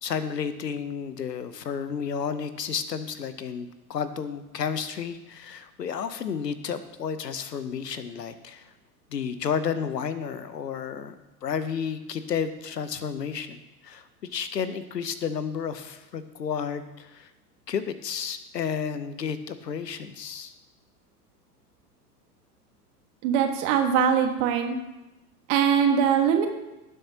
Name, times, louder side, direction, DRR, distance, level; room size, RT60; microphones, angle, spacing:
voice 1, 0.0-8.7 9.1-11.1 11.4-14.0 14.3-17.3 17.7-20.5, left 7 dB, 80° left, 12 dB, 0.9 m, -32 dB
voice 2, 23.2-24.8 25.5-26.5, right 7 dB, 50° right, 5 dB, 1.7 m, -22 dB
17.5 x 7.3 x 2.9 m, 1.0 s
figure-of-eight pair, 90°, 49 cm